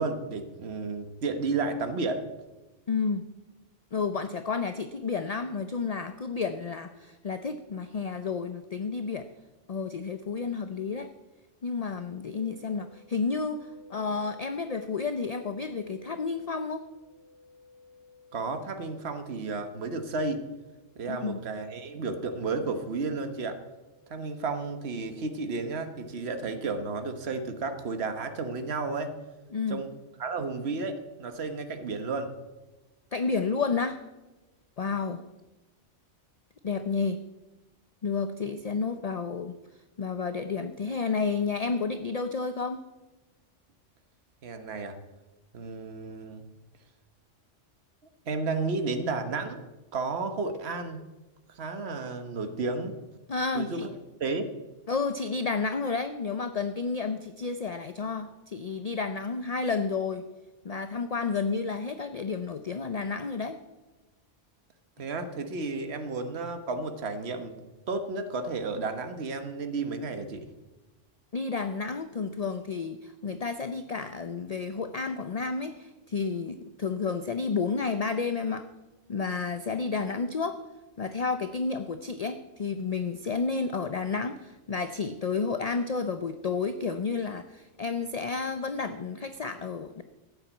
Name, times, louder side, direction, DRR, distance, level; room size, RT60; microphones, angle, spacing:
voice 1, 0.0-2.2 18.3-20.4 21.0-23.6 24.1-29.1 29.7-29.9 30.2-32.3 44.4-45.0 45.5-46.4 48.3-49.6 49.9-51.0 51.5-52.9 53.5-53.9 54.2-54.5 65.0-67.6 67.9-70.4, right 3 dB, 60° right, 7 dB, 1.5 m, -32 dB
voice 2, 2.9-3.3 3.9-9.3 9.7-11.1 11.6-16.8 21.1-21.4 29.5-29.8 33.1-34.0 34.8-35.2 36.6-37.2 38.0-39.6 40.0-42.8 53.3-53.9 54.9-60.3 60.6-63.6 71.3-78.7 79.1-80.6 81.0-90.0, left 4 dB, 40° left, 9 dB, 0.6 m, -31 dB
sound 1, 12.3-25.3, left 3 dB, 20° right, 6.3 m, -57 dB
14.0 x 9.0 x 8.1 m, 1.1 s
omnidirectional pair, 1.3 m